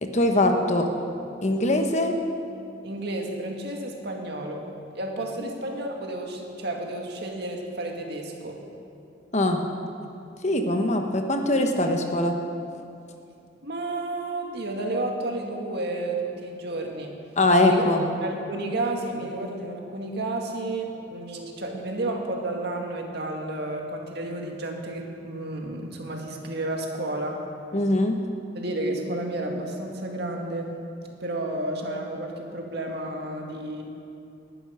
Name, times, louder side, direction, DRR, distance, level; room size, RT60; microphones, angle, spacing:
voice 1, 0.0-0.9 1.4-2.2 9.3-9.6 10.4-12.3 17.4-18.0 27.7-28.2, left 1 dB, 40° left, 4 dB, 1.1 m, -22 dB
voice 2, 2.8-4.7 4.9-8.6 13.6-17.1 17.6-17.8 18.2-27.4 28.5-30.8 31.2-33.8, right 2 dB, 60° right, 1 dB, 2.0 m, -31 dB
20.0 x 11.0 x 5.7 m, 2.6 s
head